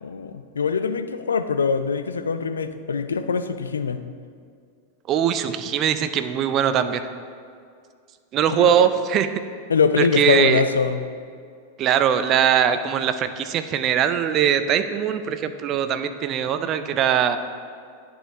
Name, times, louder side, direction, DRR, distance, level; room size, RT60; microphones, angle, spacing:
voice 1, 0.0-4.0 8.5-8.9 9.7-11.0, left 5 dB, 70° left, 10 dB, 0.3 m, -23 dB
voice 2, 5.1-7.0 8.3-9.3 10.0-10.6 11.8-17.4, right 9 dB, 35° right, 10 dB, 0.4 m, -21 dB
10.0 x 4.5 x 3.6 m, 2.2 s
figure-of-eight pair, 90°, 0 cm